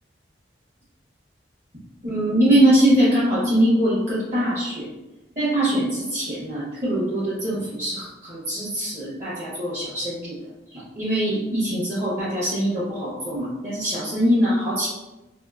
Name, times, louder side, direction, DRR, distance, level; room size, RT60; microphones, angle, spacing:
voice 1, 2.0-4.9 5.4-10.4 10.7-14.9, right 1 dB, 45° right, -10 dB, 1.0 m, -22 dB
2.9 x 2.7 x 2.4 m, 1.0 s
head